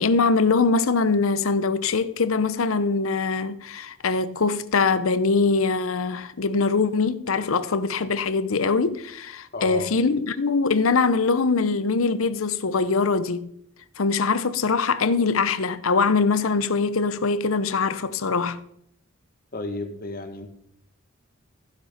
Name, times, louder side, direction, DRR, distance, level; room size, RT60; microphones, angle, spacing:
voice 1, 0.0-13.5 14.0-18.6, left 4 dB, 90° left, 0.8 m, -22 dB
voice 2, 9.5-9.9 19.5-20.5, left 2 dB, 45° left, 1.6 m, -33 dB
15.0 x 6.8 x 5.1 m
head